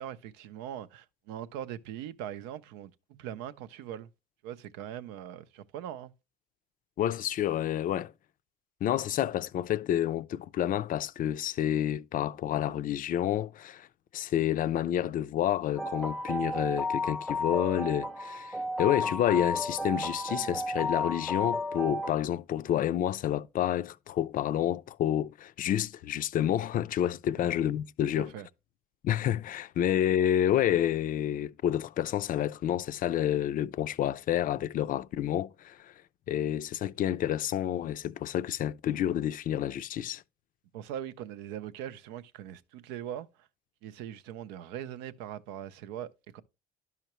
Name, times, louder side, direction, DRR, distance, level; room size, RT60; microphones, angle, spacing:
voice 1, 0.0-4.1 4.4-6.1 27.4-27.5 28.1-28.5 40.7-43.5 43.8-46.4, right 10 dB, 90° right, 0.5 m, -41 dB
voice 2, 7.0-8.1 8.8-13.9 14.1-28.3 29.0-35.9 36.3-40.2, left 11 dB, 50° left, 0.4 m, -29 dB
sound 1, 15.8-22.2, left 2 dB, ahead, 0.5 m, -33 dB
10.5 x 5.7 x 3.0 m
supercardioid pair, 85°, 17 cm